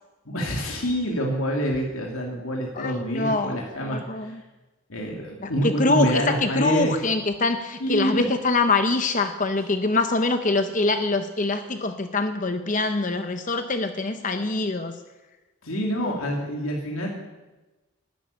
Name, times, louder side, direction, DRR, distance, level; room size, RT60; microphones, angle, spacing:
voice 1, 0.2-4.4 4.9-6.9 7.8-8.2 15.6-17.2, equal, 85° left, -1 dB, 2.8 m, -27 dB
voice 2, 2.8-3.6 3.8-4.4 5.4-14.9, left 3 dB, 35° left, 8 dB, 0.8 m, -24 dB
12.5 x 11.5 x 9.7 m, 1.1 s
head